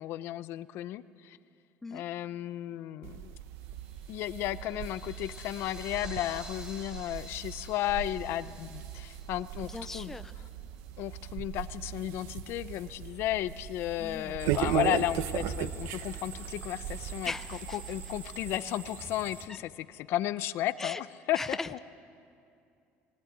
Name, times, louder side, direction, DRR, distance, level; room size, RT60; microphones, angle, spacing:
voice 1, 0.0-1.4 1.9-3.3 4.1-10.2 11.0-21.8, left 13 dB, 55° left, 15 dB, 0.6 m, -34 dB
sound 1, 3.0-18.6, right 11 dB, 70° right, 0.8 m, -38 dB
sound 2, 3.8-10.6, left 1 dB, 15° right, 2.2 m, -51 dB
voice 2, 9.7-10.3 14.0-14.3 17.2-17.8 20.8-21.0 21.4-21.8, left 3 dB, 10° left, 11 dB, 0.5 m, -38 dB
sound 3, 14.4-19.5, right 5 dB, 40° right, 2.0 m, -44 dB
21.0 x 19.5 x 9.2 m, 2.5 s
cardioid pair, 165°, 5 cm